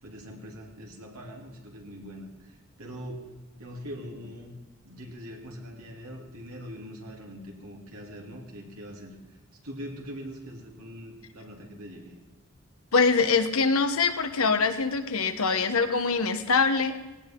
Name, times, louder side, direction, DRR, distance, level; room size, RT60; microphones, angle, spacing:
voice 1, 0.0-3.3 3.6-4.5 4.8-9.4 9.6-12.1, equal, 80° right, -1 dB, 3.1 m, -42 dB
voice 2, 12.9-17.0, left 4 dB, 75° left, 8 dB, 1.2 m, -24 dB
19.0 x 18.0 x 3.8 m, 1.1 s
head